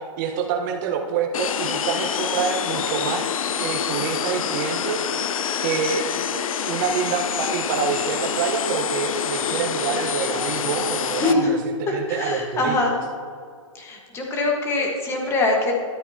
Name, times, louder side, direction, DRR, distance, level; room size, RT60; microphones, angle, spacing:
voice 1, 0.0-3.3 3.6-5.3 5.6-6.1 6.7-12.8, right 6 dB, 35° right, 4 dB, 1.1 m, -27 dB
sound 1, 1.3-11.3, left 8 dB, 85° left, 0.6 m, -26 dB
voice 2, 11.2-11.5 11.9-12.9 13.7-15.7, left 2 dB, 15° left, 0 dB, 1.4 m, -23 dB
13.0 x 8.2 x 2.9 m, 2.2 s
hypercardioid pair, 150°, 17 cm